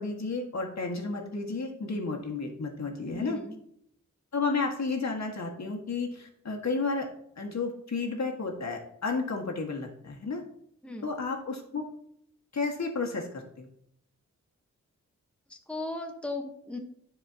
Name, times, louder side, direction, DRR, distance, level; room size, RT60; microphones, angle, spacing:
voice 1, 0.0-3.4 4.3-7.1 7.4-10.4 11.0-11.9 12.5-13.7, left 4 dB, 65° left, 1 dB, 1.8 m, -32 dB
voice 2, 3.1-3.6 10.8-11.1 15.5-16.8, left 2 dB, 5° left, 3 dB, 1.1 m, -37 dB
13.0 x 4.8 x 2.9 m, 0.71 s
cardioid pair, 60°, 30 cm